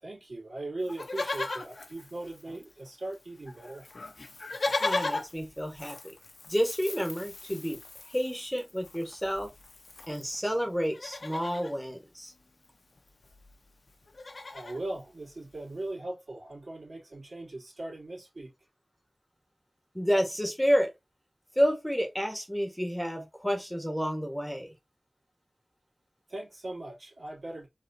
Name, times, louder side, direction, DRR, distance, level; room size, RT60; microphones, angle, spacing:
voice 1, 0.0-3.9 14.5-18.5 26.3-27.7, right 2 dB, 75° right, 2.8 m, -39 dB
Livestock farm animals working animals, 0.9-2.9 3.1-3.2 3.5-10.4 10.8-11.8 13.0-13.1 13.2-13.5 13.9-14.8 15.4-15.5, left 3 dB, 75° left, 0.7 m, -37 dB
voice 2, 4.8-6.1 6.5-7.8 8.1-9.5 10.1-12.3 19.9-20.9 21.5-24.7, equal, 5° left, 1.3 m, -30 dB
4.2 x 3.7 x 2.6 m
wide cardioid pair, 60°, 0 cm